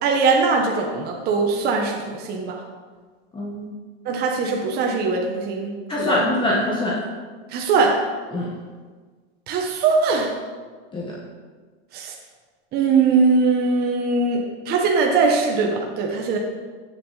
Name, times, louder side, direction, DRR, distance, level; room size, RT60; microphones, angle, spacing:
voice 1, 0.0-2.6 4.0-6.2 7.5-8.0 9.5-10.3 11.9-12.1 12.7-16.4, right 4 dB, 30° right, 0 dB, 1.3 m, -21 dB
voice 2, 3.3-3.7 5.9-7.0 8.3-8.5 10.9-11.2, left 1 dB, 15° left, -4 dB, 1.4 m, -23 dB
15.5 x 7.8 x 4.2 m, 1.5 s
supercardioid pair, 160°, 34 cm